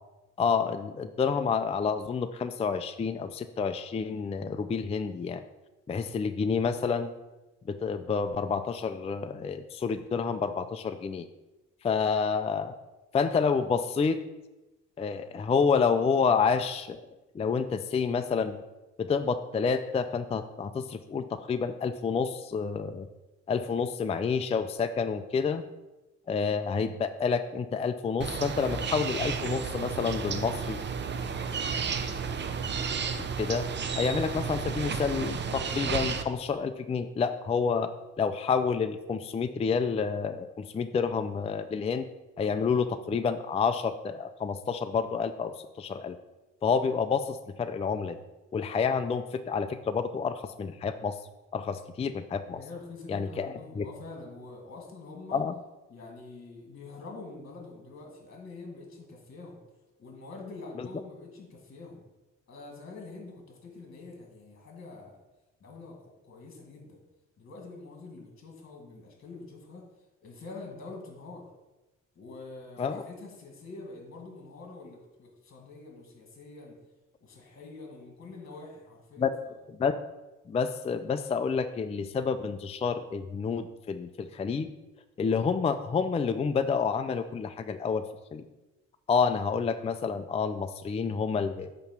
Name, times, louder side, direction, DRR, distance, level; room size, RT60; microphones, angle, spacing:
voice 1, 0.4-5.4 5.9-7.1 7.7-11.3 11.8-12.7 13.1-14.2 15.0-17.0 17.3-18.6 19.0-23.1 23.5-25.6 26.3-30.8 33.4-33.6 34.0-37.9 38.2-42.0 42.4-46.2 46.6-48.2 48.5-51.2 51.5-52.6 53.1-53.9 55.3-55.5 60.8-60.9 72.8-73.0 79.2-79.3 79.7-79.9 80.5-84.7 85.2-88.0 88.3-88.4 89.1-91.7, left 5 dB, 20° left, 9 dB, 0.4 m, -29 dB
sound 1, 28.2-36.2, right 6 dB, 35° right, 0.6 m, -32 dB
voice 2, 52.5-55.4 55.9-59.6 60.0-62.0 62.5-65.2 65.6-66.0 66.2-67.0 67.4-69.8 70.2-71.5 72.2-76.8 77.2-79.6, left 3 dB, 45° left, 0 dB, 1.8 m, -45 dB
8.6 x 3.0 x 5.9 m, 1.0 s
cardioid pair, 90°, 30 cm